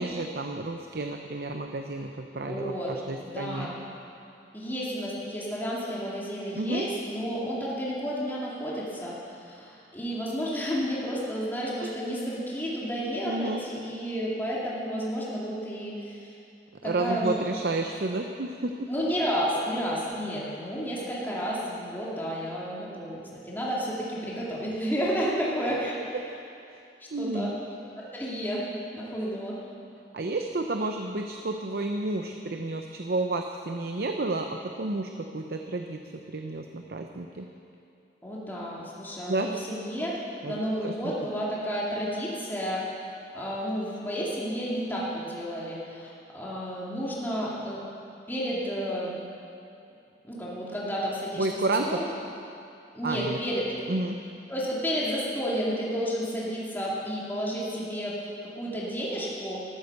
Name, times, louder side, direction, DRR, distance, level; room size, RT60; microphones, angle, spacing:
voice 1, 0.0-3.7 6.6-6.9 11.8-11.9 13.2-13.6 16.8-18.9 27.1-27.6 30.1-36.0 36.3-37.5 39.3-39.5 40.4-41.1 51.4-52.0 53.0-53.4 53.9-54.2, right 2 dB, 60° right, 4 dB, 0.7 m, -31 dB
voice 2, 2.4-2.9 3.2-3.8 4.5-16.3 16.8-17.3 18.9-26.0 27.0-27.5 28.0-28.7 28.9-29.6 38.2-40.2 40.5-47.8 48.3-49.1 50.2-52.0 52.9-53.8 54.5-59.6, equal, 10° left, -6 dB, 2.4 m, -31 dB
14.0 x 12.5 x 6.7 m, 2.6 s
head